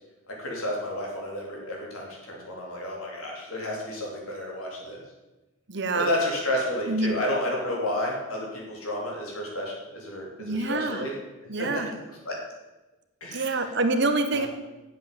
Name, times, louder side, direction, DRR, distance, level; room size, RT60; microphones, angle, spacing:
voice 1, 0.3-5.0 5.9-11.1 11.6-11.8 12.3-12.4 13.2-13.7 14.3-14.5, left 1 dB, 90° left, -2 dB, 3.5 m, -31 dB
voice 2, 5.7-6.1 6.9-7.1 10.4-11.0 11.5-11.9 13.3-14.5, right 2 dB, 55° right, 7 dB, 1.0 m, -26 dB
7.8 x 7.8 x 7.7 m, 1.1 s
head